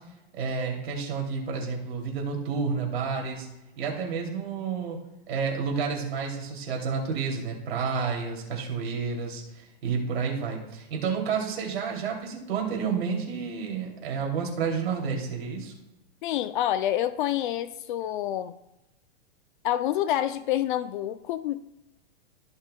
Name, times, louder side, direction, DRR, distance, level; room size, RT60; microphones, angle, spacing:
voice 1, 0.3-3.5 3.8-5.0 5.3-15.7, right 5 dB, 75° right, 0 dB, 2.8 m, -30 dB
voice 2, 16.2-18.5 19.6-21.6, left 12 dB, 55° left, 12 dB, 0.4 m, -27 dB
16.5 x 5.6 x 2.2 m, 0.92 s
hypercardioid pair, 145°, 32 cm